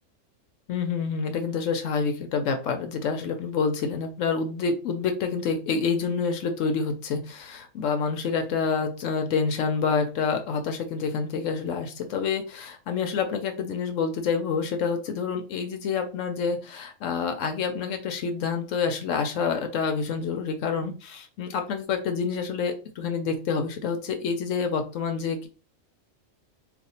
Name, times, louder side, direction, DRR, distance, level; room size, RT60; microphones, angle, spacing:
voice 1, 0.7-25.5, left 5 dB, 75° left, 6 dB, 0.9 m, -28 dB
2.5 x 2.4 x 4.1 m, 0.35 s
omnidirectional pair, 1.4 m